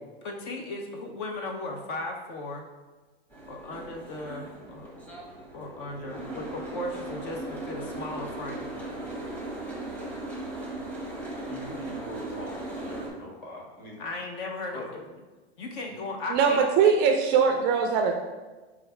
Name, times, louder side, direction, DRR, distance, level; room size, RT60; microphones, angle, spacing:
voice 1, 0.2-2.7 3.5-5.0 5.5-8.7 14.0-15.0 15.6-16.6, left 2 dB, 55° left, 2 dB, 0.7 m, -36 dB
Boat Water vehicle, 3.3-13.1, right 2 dB, 5° left, 0.8 m, -38 dB
voice 2, 5.9-6.2 11.5-14.0 14.7-14.9 15.9-16.0, left 1 dB, 30° left, -2 dB, 1.3 m, -42 dB
voice 3, 16.3-18.1, right 6 dB, 35° right, 4 dB, 0.4 m, -21 dB
4.7 x 2.4 x 4.3 m, 1.2 s
hypercardioid pair, 125°, 31 cm